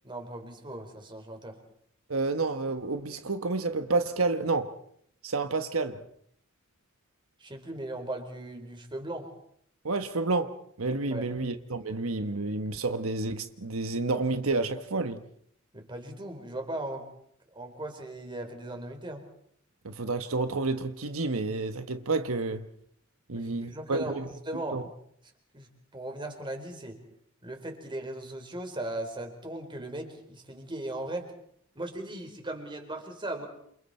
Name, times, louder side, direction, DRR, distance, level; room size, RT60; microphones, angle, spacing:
voice 1, 0.0-1.6 7.4-9.3 11.1-11.3 15.7-17.1 17.5-19.2 23.3-24.8 25.5-27.0 27.4-31.3 31.7-33.5, right 1 dB, 25° right, 4.4 m, -38 dB
voice 2, 2.1-4.7 5.2-6.0 9.8-15.2 19.8-22.7 23.3-24.3 24.7-24.8, right 3 dB, 85° right, 1.3 m, -30 dB
29.0 x 28.0 x 4.4 m
head